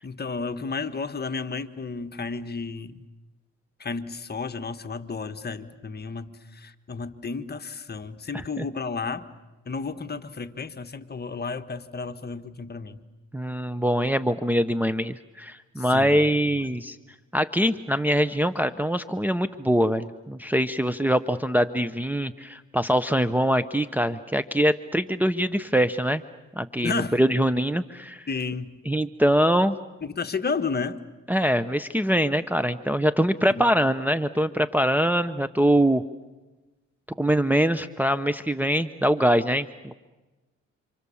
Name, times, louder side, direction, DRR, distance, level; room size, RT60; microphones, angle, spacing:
voice 1, 0.0-3.1 3.8-9.2 9.6-13.0 15.8-16.3 16.5-16.7 26.8-27.2 28.3-28.8 30.0-31.0 33.5-33.7, left 4 dB, 35° left, 9 dB, 1.5 m, -32 dB
voice 2, 13.3-17.0 17.3-26.2 26.6-28.2 28.9-29.8 31.3-36.0 37.2-39.9, equal, 5° right, 8 dB, 0.8 m, -23 dB
29.0 x 26.5 x 7.1 m, 1.1 s
cardioid pair, 90°, 30 cm